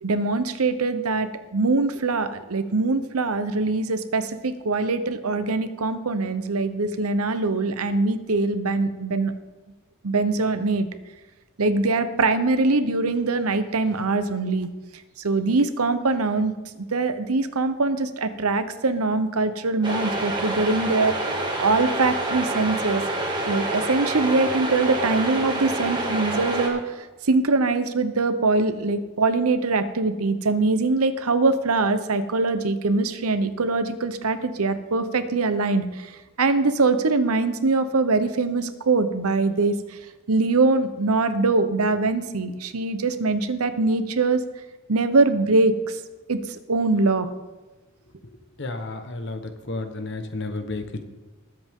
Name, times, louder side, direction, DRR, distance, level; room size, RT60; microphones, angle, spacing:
voice 1, 0.0-9.3 10.0-10.9 11.6-14.7 15.2-16.5 16.9-23.0 23.5-36.1 36.4-39.8 40.3-44.4 44.9-45.7 46.3-46.4 46.7-47.3, right 3 dB, 85° right, 11 dB, 0.9 m, -23 dB
sound 1, 19.8-26.7, right 2 dB, 20° right, 1.7 m, -27 dB
voice 2, 48.6-51.0, left 2 dB, 55° left, 7 dB, 1.2 m, -32 dB
20.5 x 7.8 x 3.7 m, 1.2 s
head